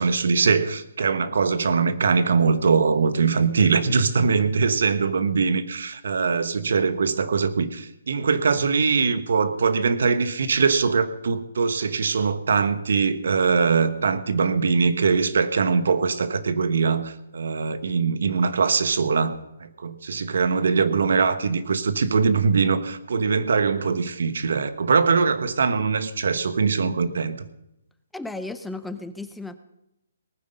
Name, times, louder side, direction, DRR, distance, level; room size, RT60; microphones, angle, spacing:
voice 1, 0.0-27.4, right 5 dB, 70° right, 12 dB, 1.2 m, -22 dB
voice 2, 28.1-29.6, left 2 dB, 5° left, 10 dB, 0.5 m, -34 dB
19.0 x 9.5 x 5.3 m, 0.83 s
hypercardioid pair, 160°, 0 cm